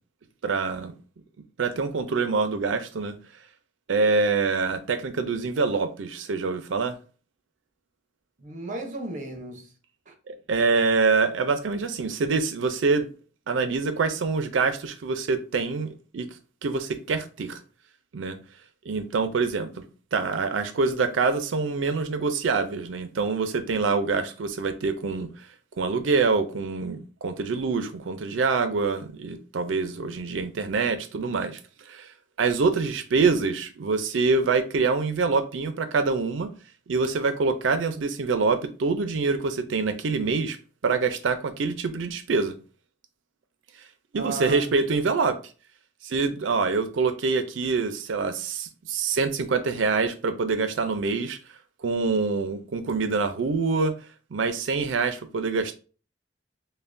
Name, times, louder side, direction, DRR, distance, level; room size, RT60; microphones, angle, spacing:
voice 1, 0.4-0.9 1.6-3.1 3.9-7.0 10.3-13.1 13.5-16.3 16.6-17.6 18.1-18.4 18.9-19.8 20.1-25.5 25.8-31.6 31.9-32.1 32.4-36.5 36.9-40.6 40.8-42.5 44.1-45.4 46.0-51.4 51.8-53.9 54.3-55.7, right 4 dB, 75° right, 0.5 m, -25 dB
voice 2, 8.4-9.7 10.1-10.2 44.1-44.8, right 2 dB, 45° right, 0.9 m, -35 dB
5.5 x 2.1 x 2.5 m
head